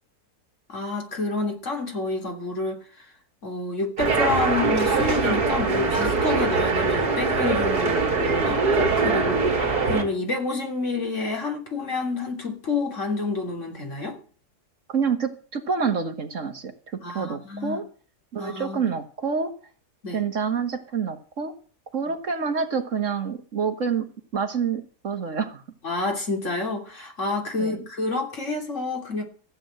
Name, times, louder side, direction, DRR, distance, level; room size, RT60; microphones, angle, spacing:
voice 1, 0.7-2.8 3.4-14.2 17.0-17.8 18.4-18.9 20.0-20.2 25.8-29.2, left 3 dB, 50° left, 3.5 m, -28 dB
sound 1, 4.0-10.0, right 4 dB, 85° right, 3.0 m, -22 dB
voice 2, 14.9-16.7 17.1-17.8 18.3-19.5 20.1-21.5 21.9-24.1 24.3-25.6 27.6-27.8, right 6 dB, 55° right, 1.8 m, -27 dB
15.0 x 8.7 x 7.7 m
omnidirectional pair, 1.6 m